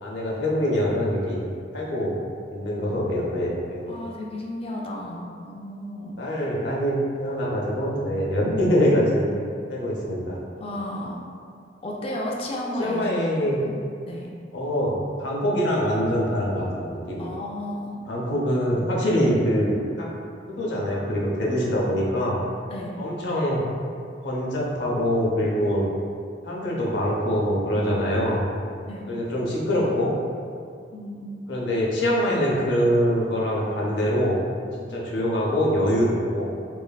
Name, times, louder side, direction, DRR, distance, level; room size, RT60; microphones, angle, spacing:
voice 1, 0.0-1.5 1.7-2.2 2.5-4.0 6.2-9.3 9.7-10.3 12.8-13.6 14.5-17.3 18.1-20.1 20.5-22.4 23.0-23.6 24.2-25.8 26.4-28.4 29.1-30.1 31.5-34.4 34.9-36.5, equal, 75° left, -4 dB, 0.6 m, -24 dB
voice 2, 3.9-6.2 10.6-11.2 11.8-13.1 13.6-13.7 14.1-14.3 17.2-18.0 22.7-23.0 27.8-28.0 28.8-29.1 30.9-31.4, left 1 dB, 35° left, -2 dB, 0.4 m, -33 dB
3.1 x 2.4 x 2.2 m, 2.3 s
head